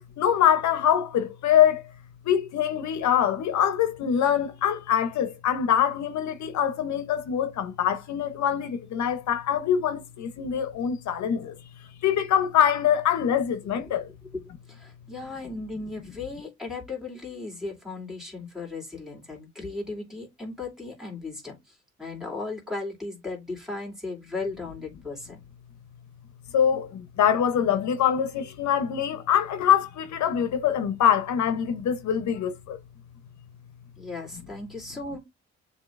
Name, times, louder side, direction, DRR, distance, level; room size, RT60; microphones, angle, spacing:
voice 1, 0.2-1.8 2.2-11.6 12.0-14.1 26.5-32.8, left 9 dB, 70° left, 0.8 m, -24 dB
voice 2, 13.6-13.9 14.3-14.4 14.7-25.4 34.0-35.2, left 3 dB, ahead, 2.7 m, -36 dB
7.1 x 2.8 x 2.5 m
cardioid pair, 90°, 30 cm